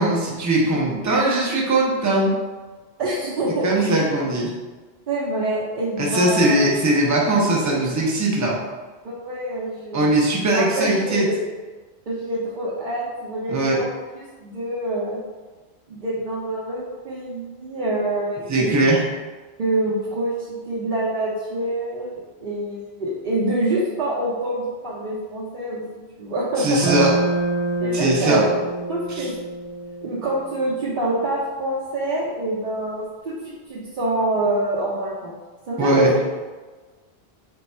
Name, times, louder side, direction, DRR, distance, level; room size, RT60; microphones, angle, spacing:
voice 1, 0.0-2.3 3.6-4.5 6.0-8.6 9.9-11.3 13.5-13.8 18.5-19.0 26.6-27.2 27.9-28.5 29.2-29.3 35.8-36.1, right 2 dB, 20° right, -3 dB, 0.5 m, -20 dB
voice 2, 3.0-4.2 5.1-6.6 9.0-10.1 10.5-11.4 12.1-15.2 15.9-18.9 19.6-26.9 27.8-28.6 28.9-29.3 30.0-35.4 35.7-36.3, right 1 dB, 55° right, -7 dB, 0.8 m, -26 dB
sound 1, 26.8-31.1, right 2 dB, 20° left, 0.9 m, -27 dB
3.5 x 2.3 x 4.2 m, 1.3 s
omnidirectional pair, 1.1 m